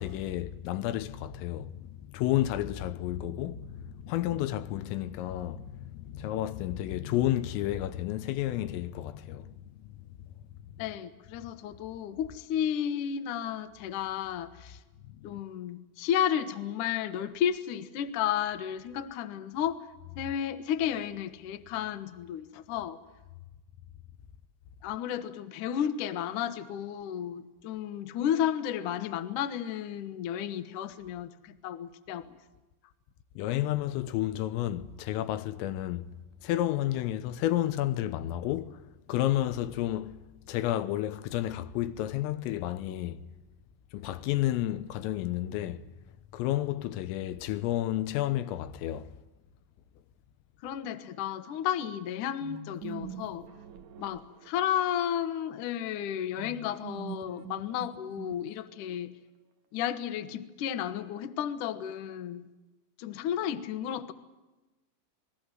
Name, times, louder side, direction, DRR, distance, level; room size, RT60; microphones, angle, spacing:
voice 1, 0.0-10.0 15.1-15.4 33.4-36.1 36.4-38.8 39.1-40.2 40.5-43.2 43.9-45.9 46.3-49.1, left 13 dB, 90° left, 3.7 m, -31 dB
voice 2, 10.8-14.8 15.2-19.8 20.2-23.0 24.8-32.2 50.6-53.4 54.0-59.1 59.7-62.4 63.0-64.1, left 10 dB, 65° left, 2.1 m, -32 dB
sound 1, 52.4-55.0 56.4-58.8, right 10 dB, 65° right, 1.9 m, -44 dB
29.0 x 20.5 x 7.8 m
omnidirectional pair, 5.8 m